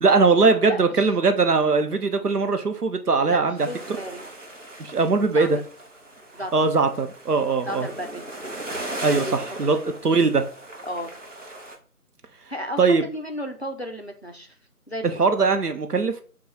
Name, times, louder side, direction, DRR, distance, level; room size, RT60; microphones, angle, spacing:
voice 1, 0.0-3.7 4.8-5.6 6.5-7.9 9.0-9.2 9.6-10.5 12.8-13.0 15.0-16.2, right 4 dB, 90° right, 0.8 m, -20 dB
voice 2, 0.6-1.1 3.3-4.3 5.3-5.5 6.3-6.5 7.6-8.2 9.1-9.8 10.8-11.1 12.5-14.6 14.9-15.2, equal, 45° left, 0.4 m, -34 dB
sound 1, 3.6-11.8, right 1 dB, 55° right, 0.8 m, -38 dB
4.1 x 2.3 x 4.5 m
figure-of-eight pair, 165°, 45 cm